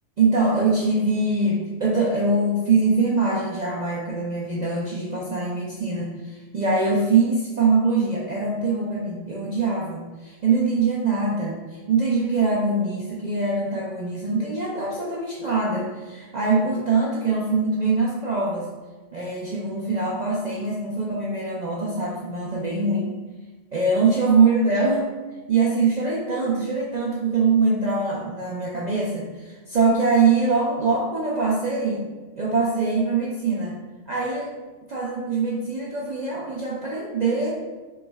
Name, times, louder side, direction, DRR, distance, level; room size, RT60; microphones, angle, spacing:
voice 1, 0.2-18.7 19.1-23.2 23.7-25.1 25.5-32.0 32.4-33.8 34.1-34.5 34.9-37.5, right 4 dB, 60° right, -4 dB, 0.4 m, -23 dB
4.5 x 3.0 x 2.3 m, 1.3 s
omnidirectional pair, 1.3 m